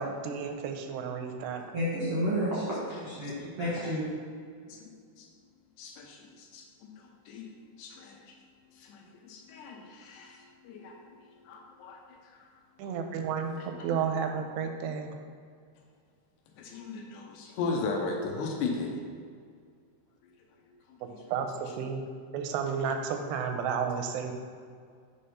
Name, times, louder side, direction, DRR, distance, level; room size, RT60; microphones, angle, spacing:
voice 1, 0.0-1.6 12.8-15.2 21.0-22.1 22.3-24.3, right 6 dB, 85° right, 5 dB, 2.6 m, -32 dB
voice 2, 1.7-4.1, equal, 65° right, -9 dB, 1.4 m, -31 dB
voice 3, 5.8-6.6 7.3-7.5 7.8-8.2 8.8-10.4 10.6-10.9 11.5-12.0 12.8-12.9 13.6-13.7 16.6-19.0 21.1-21.2, left 3 dB, 80° left, 0 dB, 2.8 m, -36 dB
7.6 x 3.4 x 5.5 m, 2.1 s
omnidirectional pair, 4.8 m